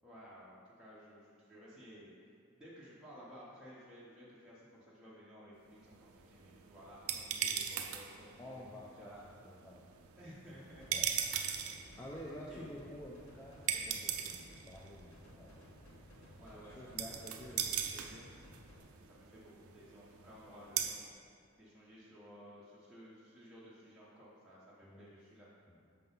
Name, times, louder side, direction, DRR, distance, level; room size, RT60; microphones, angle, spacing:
voice 1, 0.0-2.1 2.5-9.2 10.2-11.4 12.2-12.7 16.3-18.3 18.8-25.5 25.9-26.0, equal, 5° right, -10 dB, 0.7 m, -56 dB
sound 1, 5.8-21.1, right 8 dB, 80° right, 0.4 m, -41 dB
voice 2, 8.4-9.2 9.4-9.9 10.9-11.1 12.0-15.6 15.9-16.0 16.3-17.6 24.8-25.2 25.7-25.8, left 1 dB, 15° left, -4 dB, 0.4 m, -50 dB
sound 2, 10.6-18.8, left 1 dB, 80° left, 0.9 m, -58 dB
5.6 x 3.8 x 5.4 m, 2.2 s
head